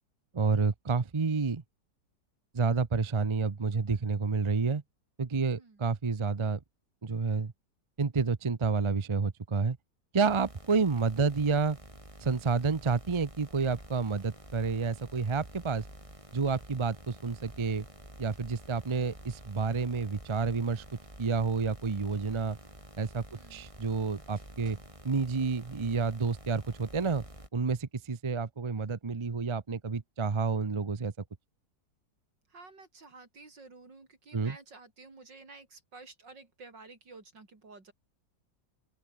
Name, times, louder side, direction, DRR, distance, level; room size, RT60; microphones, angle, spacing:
voice 1, 0.3-1.6 2.5-4.8 5.2-6.6 7.0-7.5 8.0-9.8 10.1-11.8 12.2-15.8 16.3-17.9 18.2-20.8 21.2-22.6 23.0-23.2 23.5-24.8 25.0-27.2 27.5-31.1 34.3-34.6, right 4 dB, 35° right, 0.4 m, -29 dB
sound 1, 10.3-27.5, right 1 dB, 15° right, 7.7 m, -50 dB
voice 2, 23.3-23.7 32.5-37.9, right 3 dB, 80° right, 5.0 m, -52 dB
open air
omnidirectional pair, 1.9 m